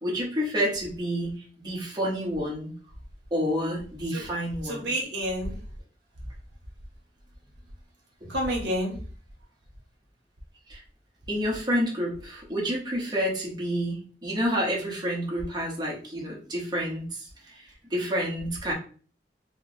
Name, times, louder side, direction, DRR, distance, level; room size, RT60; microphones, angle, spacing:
voice 1, 0.0-2.7 3.3-4.9 8.2-8.3 10.7-10.8 11.3-17.3 17.9-18.7, equal, 25° right, -4 dB, 0.9 m, -29 dB
voice 2, 4.6-5.6 8.3-9.0, equal, 70° right, 0 dB, 0.9 m, -29 dB
4.3 x 2.0 x 2.5 m, 0.40 s
head